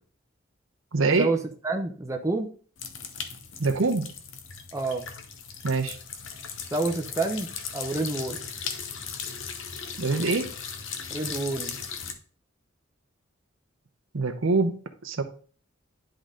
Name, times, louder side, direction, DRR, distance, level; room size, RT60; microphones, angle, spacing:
voice 1, 0.9-1.3 3.6-4.1 5.6-6.0 10.0-10.6 14.1-15.2, right 3 dB, 75° right, 8 dB, 0.8 m, -25 dB
voice 2, 1.6-2.5 4.7-5.1 6.7-8.4 11.1-11.8, right 3 dB, 15° right, 3 dB, 0.7 m, -28 dB
sound 1, 2.8-12.1, left 6 dB, 65° left, 0.9 m, -37 dB
10.5 x 3.9 x 3.8 m, 0.42 s
head